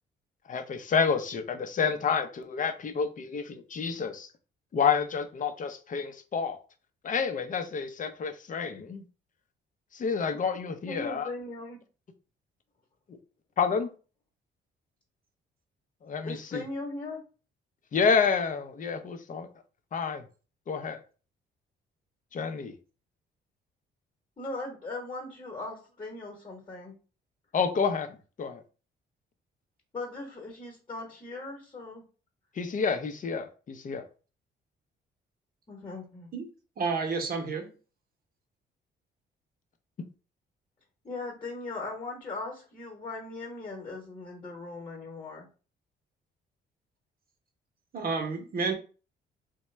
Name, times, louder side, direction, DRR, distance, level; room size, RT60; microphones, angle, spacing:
voice 1, 0.5-4.3 4.7-6.6 7.0-9.0 9.9-11.3 13.6-13.9 16.0-16.6 17.9-19.5 19.9-20.2 20.7-21.0 22.3-22.7 27.5-28.6 32.6-34.0, left 6 dB, 40° left, 0.6 m, -29 dB
voice 2, 10.9-11.8 16.2-17.2 24.4-26.9 29.9-32.0 35.7-36.3 41.0-45.5, left 2 dB, 25° left, 1.1 m, -39 dB
voice 3, 36.8-37.7 47.9-48.7, right 4 dB, 50° right, 0.8 m, -30 dB
2.9 x 2.2 x 3.2 m
cardioid pair, 90°, 20 cm